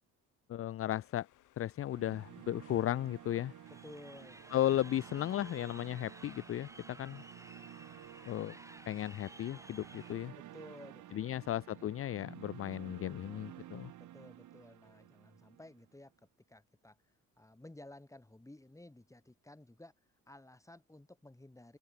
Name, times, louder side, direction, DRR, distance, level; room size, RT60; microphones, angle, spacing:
voice 1, 0.5-1.3 1.6-3.5 4.5-7.2 8.3-8.5 8.9-10.3 11.1-13.9, left 12 dB, 50° left, 0.5 m, -35 dB
sound 1, 0.9-10.3, left 15 dB, 85° left, 2.4 m, -66 dB
sound 2, 1.9-16.0, right 13 dB, 75° right, 3.1 m, -53 dB
voice 2, 3.7-4.4 10.3-11.9 14.0-16.1 16.5-17.0 17.4-19.9 20.3-21.8, left 1 dB, 10° left, 7.2 m, -55 dB
Crowd, 3.7-10.1, right 1 dB, 10° right, 4.0 m, -55 dB
cardioid pair, 90°, 30 cm